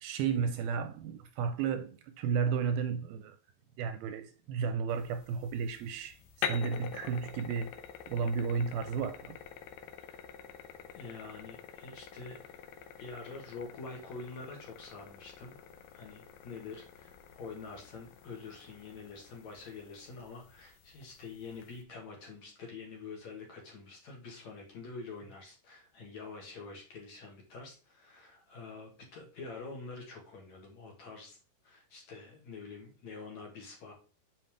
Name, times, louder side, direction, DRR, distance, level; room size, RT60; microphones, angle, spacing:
voice 1, 0.0-3.4 3.8-7.8 8.1-9.4, right 6 dB, 80° right, 2.3 m, -33 dB
sound 1, 4.9-21.8, left 8 dB, 75° left, 2.6 m, -46 dB
voice 2, 10.9-12.5 13.0-15.5 15.9-31.4 31.6-33.9, left 4 dB, 55° left, 2.5 m, -46 dB
7.0 x 5.7 x 3.5 m
omnidirectional pair, 4.7 m